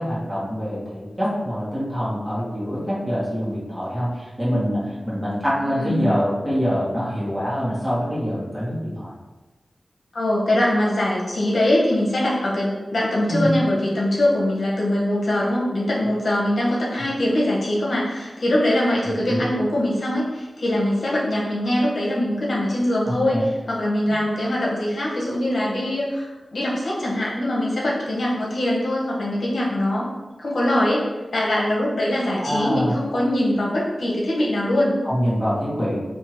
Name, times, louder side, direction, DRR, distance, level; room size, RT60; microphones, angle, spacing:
voice 1, 0.0-9.1 13.3-13.5 19.2-19.4 23.0-23.4 32.4-32.9 35.0-36.0, equal, 20° right, -9 dB, 1.5 m, -25 dB
voice 2, 5.6-6.1 10.1-30.1 30.4-34.9, left 1 dB, 70° left, -5 dB, 0.9 m, -22 dB
3.5 x 2.8 x 3.0 m, 1.2 s
wide cardioid pair, 85°, 0 cm